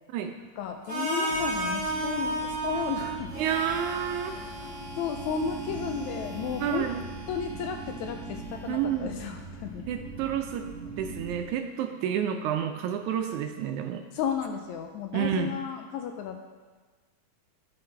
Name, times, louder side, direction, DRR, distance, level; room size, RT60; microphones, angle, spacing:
voice 1, 0.6-3.3 4.3-6.9 7.3-9.8 14.1-16.4, left 7 dB, 80° left, 4 dB, 1.8 m, -33 dB
Harmonica, 0.9-8.8, right 1 dB, 5° right, 1.9 m, -35 dB
sound 1, 1.3-11.4, right 3 dB, 35° left, 1.8 m, -41 dB
voice 2, 3.4-4.4 6.6-7.0 8.7-9.1 9.9-14.0 15.1-15.5, right 9 dB, 80° right, 6 dB, 1.9 m, -30 dB
12.5 x 5.7 x 3.3 m, 1.4 s
omnidirectional pair, 3.6 m